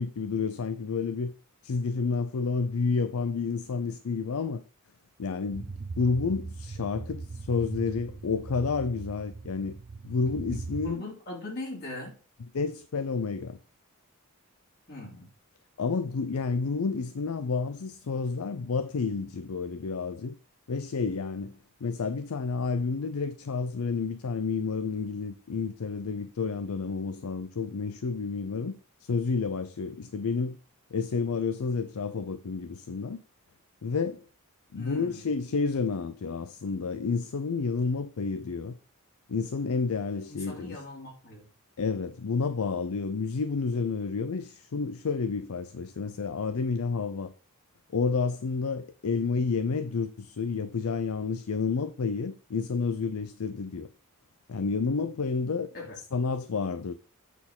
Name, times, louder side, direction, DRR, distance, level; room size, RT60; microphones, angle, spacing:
voice 1, 0.0-1.3 1.6-4.6 5.2-9.8 10.0-11.0 12.5-13.6 15.8-20.4 20.7-28.8 29.0-30.6 30.9-33.2 33.8-34.2 34.7-38.8 39.3-40.8 41.8-47.3 47.9-53.9 54.5-55.7 56.1-56.9, left 4 dB, 70° left, 0.5 m, -30 dB
sound 1, 5.5-10.9, right 3 dB, 45° right, 0.4 m, -40 dB
voice 2, 10.8-12.1 14.9-15.3 34.7-35.2 40.3-41.5 55.7-56.0, left 2 dB, 45° left, 3.2 m, -40 dB
8.3 x 4.3 x 5.4 m
head